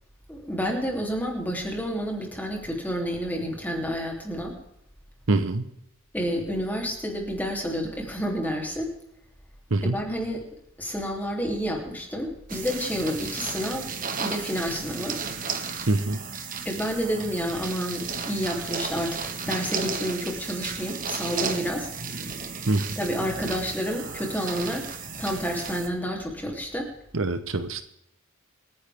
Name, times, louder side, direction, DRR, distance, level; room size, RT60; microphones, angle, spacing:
voice 1, 0.3-4.6 6.1-8.9 9.9-10.4 10.8-13.9 14.2-15.2 16.6-21.9 23.0-24.9 25.2-26.9, equal, 10° left, 0 dB, 3.0 m, -29 dB
voice 2, 5.3-5.6 9.7-10.0 15.9-16.2 22.7-22.9 27.1-27.8, right 2 dB, 60° right, 10 dB, 0.9 m, -24 dB
sound 1, 12.5-25.9, right 5 dB, 40° right, 1.5 m, -34 dB
26.5 x 10.0 x 3.5 m, 0.79 s
head